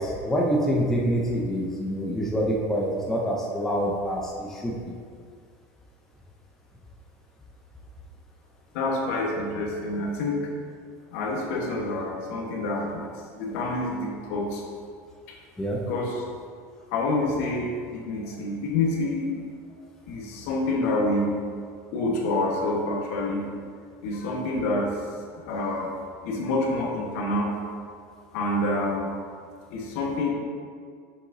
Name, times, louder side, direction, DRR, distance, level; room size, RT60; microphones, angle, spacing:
voice 1, 0.0-4.9 15.6-15.8, equal, 5° left, -3 dB, 0.6 m, -26 dB
voice 2, 8.7-10.4 11.1-13.1 13.4-14.6 15.9-16.2 16.9-19.3 20.1-21.3 21.9-23.5 24.0-24.9 25.3-25.9 26.2-27.5 27.9-28.0 28.3-29.1 29.7-30.3, left 2 dB, 65° left, -1 dB, 1.3 m, -27 dB
7.5 x 6.8 x 2.7 m, 2.1 s
cardioid pair, 180°, 8 cm